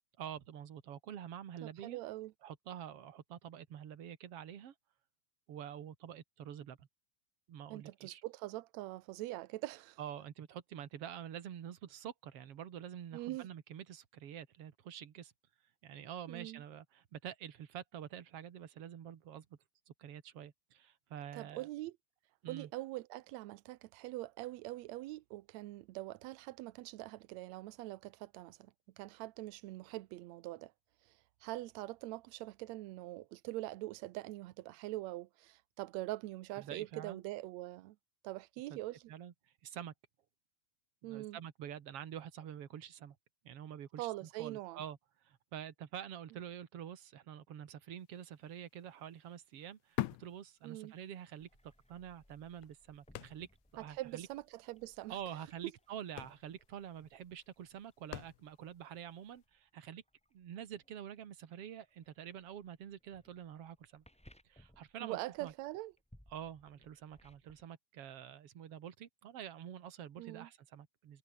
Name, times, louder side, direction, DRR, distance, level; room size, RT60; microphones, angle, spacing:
voice 1, 0.2-2.0 2.4-4.7 5.5-6.9 7.5-8.2 10.0-15.3 15.8-19.5 19.9-21.7 22.4-22.7 36.6-37.2 38.7-38.8 39.1-39.3 39.6-39.9 41.0-43.2 43.4-45.0 45.2-53.5 53.7-54.3 55.1-60.0 60.3-64.0 64.5-65.5 66.3-71.2, right 9 dB, 50° right, 2.3 m, -47 dB
voice 2, 1.6-2.3 7.7-10.0 13.1-13.5 16.3-16.6 21.4-22.0 22.5-30.7 31.0-38.0 38.2-39.0 41.0-41.4 44.0-44.8 50.6-50.9 53.8-55.2 65.0-65.9 70.2-70.5, right 17 dB, 85° right, 1.5 m, -43 dB
sound 1, 48.2-48.3 48.6-51.2 51.6-51.7 52.3-53.8 54.1-54.2 54.4-54.7 55.5-55.7 56.0-58.8 59.4-59.5, left 16 dB, 70° left, 2.1 m, -44 dB
sound 2, 51.4-67.7, equal, ahead, 2.9 m, -67 dB
omnidirectional pair, 3.9 m